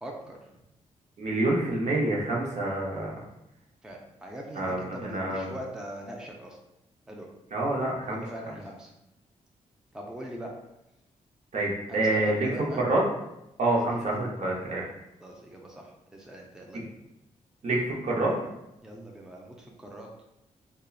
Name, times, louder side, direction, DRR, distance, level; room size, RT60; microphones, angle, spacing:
voice 1, 0.0-0.4 3.8-6.6 7.1-7.3 8.0-8.9 9.9-10.5 11.9-12.8 13.7-14.3 15.2-16.9 18.8-20.1, right 1 dB, 5° right, 0 dB, 0.4 m, -41 dB
voice 2, 1.2-3.1 4.5-5.5 7.5-8.2 11.5-12.5 12.8-13.0 13.6-14.8 17.6-18.3, right 2 dB, 55° right, -3 dB, 0.7 m, -27 dB
2.8 x 2.1 x 2.3 m, 0.89 s
supercardioid pair, 55°, 14 cm